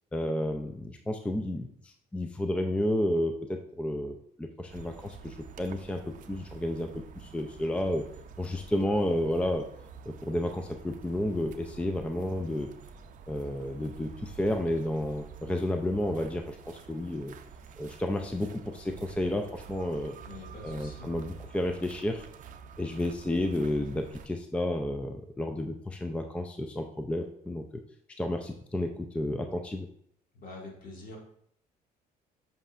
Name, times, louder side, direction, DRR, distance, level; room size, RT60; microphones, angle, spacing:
voice 1, 0.1-6.0 6.3-8.0 8.4-9.7 10.2-12.7 13.3-17.3 17.8-20.2 20.6-22.3 22.8-27.8 28.2-29.9, left 1 dB, 5° left, 5 dB, 0.4 m, -31 dB
sound 1, 4.7-24.3, right 7 dB, 50° right, 0.6 m, -48 dB
voice 2, 20.2-21.1 30.3-31.2, left 2 dB, 55° left, -1 dB, 2.0 m, -45 dB
7.8 x 5.3 x 2.5 m, 0.69 s
cardioid pair, 110°, 17 cm